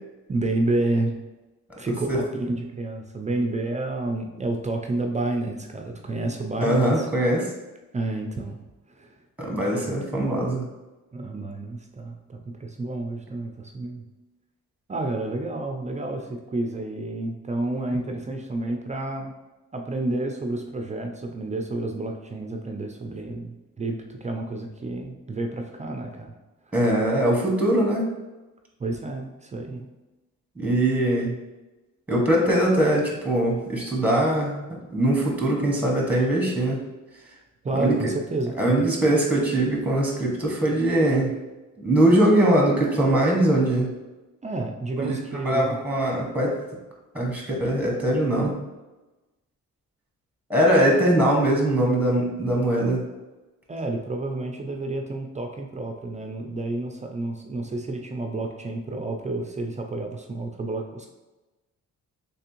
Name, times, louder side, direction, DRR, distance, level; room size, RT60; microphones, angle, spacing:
voice 1, 0.3-1.1 1.8-7.1 7.9-8.6 9.0-9.2 9.7-9.9 11.1-14.0 14.9-19.3 19.7-26.3 28.8-29.9 37.6-38.8 44.4-45.8 53.7-61.1, right 2 dB, 25° right, 3 dB, 0.3 m, -30 dB
voice 2, 6.6-7.5 9.4-10.7 26.7-28.1 30.6-31.4 32.1-34.6 34.9-36.8 37.7-38.0 38.6-41.4 41.8-43.9 45.0-45.2 45.4-46.6 47.1-48.5 50.5-53.0, right 1 dB, 5° right, -1 dB, 0.9 m, -21 dB
3.4 x 3.3 x 3.0 m, 1.1 s
cardioid pair, 110°, 32 cm